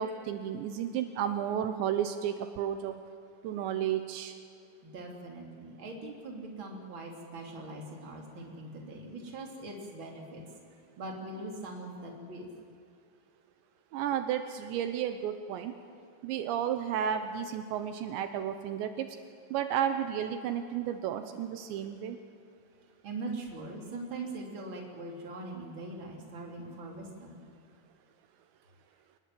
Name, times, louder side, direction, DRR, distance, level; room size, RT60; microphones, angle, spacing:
voice 1, 0.0-3.0 3.4-4.3 13.9-15.7 16.2-19.1 19.5-22.2, right 9 dB, 80° right, 8 dB, 3.1 m, -32 dB
voice 2, 4.8-10.6 11.0-12.5 15.6-15.7 23.0-27.4, right 2 dB, 30° right, 0 dB, 3.5 m, -41 dB
27.0 x 19.5 x 7.7 m, 2.4 s
omnidirectional pair, 5.2 m